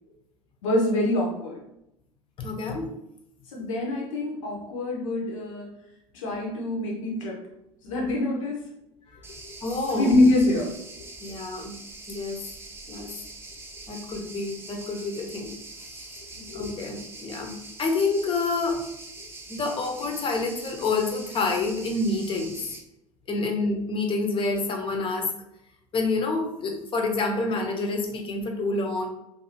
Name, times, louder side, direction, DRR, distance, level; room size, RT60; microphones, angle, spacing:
voice 1, 0.6-1.6 3.5-5.7 6.1-7.4 7.8-8.6 9.9-10.7 16.4-16.8, left 2 dB, 65° left, -2 dB, 0.7 m, -25 dB
voice 2, 2.4-2.9 9.6-10.1 11.2-11.7 12.1-12.4 12.9-13.1 13.9-15.5 15.9-16.1 16.5-18.8 19.5-22.5 23.3-25.3 25.9-29.1, left 3 dB, 30° left, 3 dB, 0.6 m, -28 dB
sound 1, 9.2-22.8, right 2 dB, 15° right, 0.6 m, -43 dB
2.6 x 2.5 x 2.7 m, 0.81 s
figure-of-eight pair, 65°, 18 cm